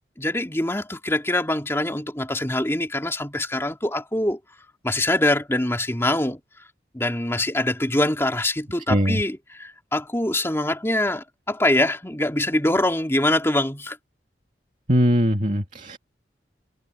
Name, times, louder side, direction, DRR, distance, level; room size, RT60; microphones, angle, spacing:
voice 1, 0.2-4.4 4.8-6.4 6.9-14.0, left 1 dB, 15° left, 2.7 m, -24 dB
voice 2, 8.9-9.2 14.9-16.0, equal, 45° right, 2.7 m, -21 dB
head